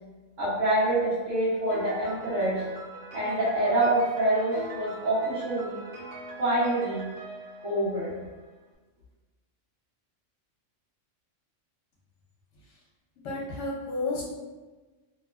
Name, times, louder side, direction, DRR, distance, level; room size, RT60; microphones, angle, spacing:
voice 1, 0.4-2.6 3.1-5.8 6.4-7.1 7.6-8.2, right 1 dB, 90° right, -12 dB, 1.2 m, -26 dB
Piano, 1.7-8.5, right 2 dB, 55° right, 0.5 m, -43 dB
voice 2, 13.2-14.2, left 3 dB, 70° left, -4 dB, 1.0 m, -31 dB
2.9 x 2.2 x 2.3 m, 1.3 s
omnidirectional pair, 1.3 m